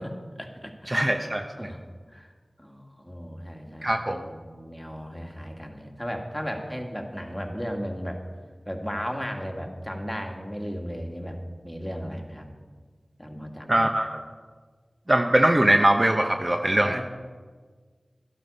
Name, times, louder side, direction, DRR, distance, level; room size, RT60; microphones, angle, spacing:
voice 1, 0.0-1.0 1.6-1.8 2.1-2.3 2.6-8.2 8.7-11.4 11.6-12.5 13.2-13.9 16.4-17.0, equal, 5° left, 2 dB, 2.0 m, -35 dB
voice 2, 0.9-1.4 3.8-4.2 13.7-14.2 15.1-17.0, right 1 dB, 35° right, 5 dB, 0.8 m, -21 dB
13.0 x 12.0 x 5.4 m, 1.5 s
wide cardioid pair, 50°, 0 cm